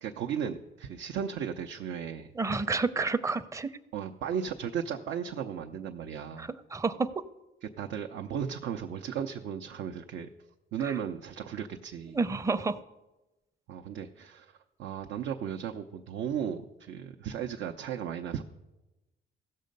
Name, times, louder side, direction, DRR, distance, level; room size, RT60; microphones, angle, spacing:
voice 1, 0.0-2.3 3.9-6.5 7.6-10.3 10.7-12.2 13.7-18.4, right 8 dB, 80° right, 4 dB, 0.6 m, -35 dB
voice 2, 2.4-3.7 6.4-7.1 10.8-10.9 12.0-12.8, right 4 dB, 15° right, 11 dB, 0.6 m, -30 dB
16.0 x 6.5 x 5.3 m, 1.0 s
cardioid pair, 90°, 20 cm